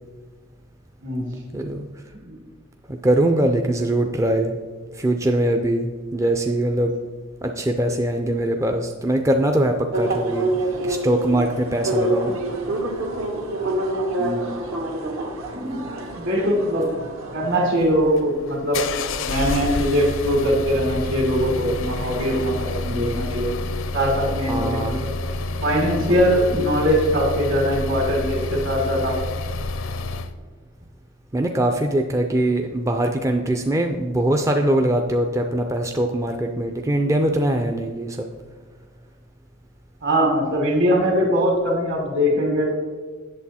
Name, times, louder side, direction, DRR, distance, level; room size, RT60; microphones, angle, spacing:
voice 1, 1.5-1.9 2.9-4.6 4.9-7.0 7.4-12.4 24.5-25.0 31.3-38.3, right 1 dB, 15° right, 4 dB, 0.4 m, -22 dB
sound 1, 9.9-17.9, right 2 dB, 75° right, 1.5 m, -27 dB
voice 2, 14.1-14.5 15.5-15.8 16.2-16.9 17.3-18.8 19.2-23.5 23.9-25.1 25.6-29.2 40.0-42.7, equal, 55° right, -3 dB, 1.9 m, -21 dB
sound 2, 17.8-30.3, left 3 dB, 65° left, 0.5 m, -29 dB
8.3 x 6.9 x 4.2 m, 1.5 s
head